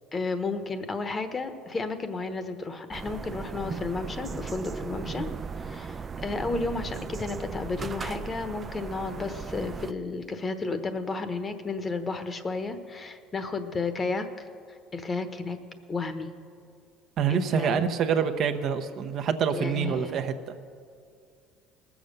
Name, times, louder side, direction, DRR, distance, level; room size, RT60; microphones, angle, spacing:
voice 1, 0.1-5.3 5.6-14.5 14.9-15.6 15.9-16.3 17.3-17.9 19.5-20.1, left 3 dB, 30° left, 9 dB, 1.1 m, -32 dB
sound 1, 2.9-9.9, right 5 dB, 30° right, 0.4 m, -37 dB
voice 2, 17.2-20.5, right 7 dB, 55° right, 8 dB, 0.8 m, -26 dB
19.0 x 7.2 x 6.6 m, 2.3 s
supercardioid pair, 95°, 0 cm